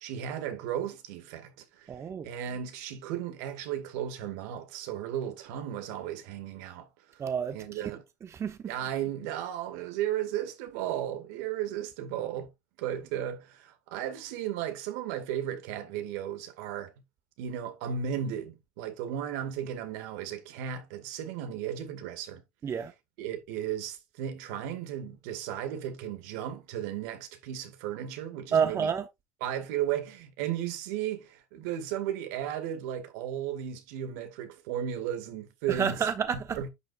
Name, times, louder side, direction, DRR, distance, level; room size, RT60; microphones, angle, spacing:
voice 1, 0.0-1.9 2.2-6.9 7.1-7.2 7.5-8.0 8.7-12.5 12.8-16.9 17.4-22.4 23.2-28.9 29.4-36.1 36.5-36.7, right 10 dB, 70° right, 2.1 m, -35 dB
voice 2, 1.9-2.3 7.2-7.9 8.2-8.6 22.6-22.9 28.5-29.1 35.7-36.6, right 7 dB, 35° right, 1.0 m, -29 dB
10.5 x 6.6 x 2.5 m
hypercardioid pair, 85°, 9 cm